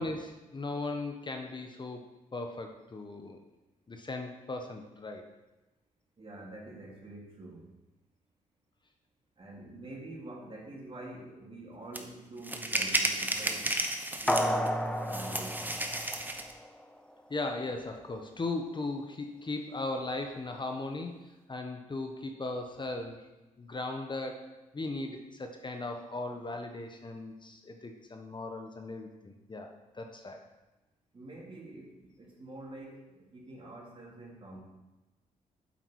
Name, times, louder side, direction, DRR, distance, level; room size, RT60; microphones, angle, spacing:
voice 1, 0.0-3.4 3.9-5.3 17.3-21.2 21.5-23.2 23.6-29.7 29.9-30.4, left 2 dB, 35° left, 4 dB, 1.2 m, -38 dB
voice 2, 6.2-7.7 9.4-13.7 14.2-15.8 31.1-34.6, right 2 dB, 40° right, -2 dB, 3.3 m, -46 dB
sound 1, 11.9-12.0 12.4-14.7 15.1-16.5, right 1 dB, 15° right, 1.2 m, -32 dB
sound 2, 14.3-16.8 17.2-17.3, equal, 5° left, 0.9 m, -32 dB
8.5 x 7.6 x 4.8 m, 1.1 s
supercardioid pair, 60°, 14 cm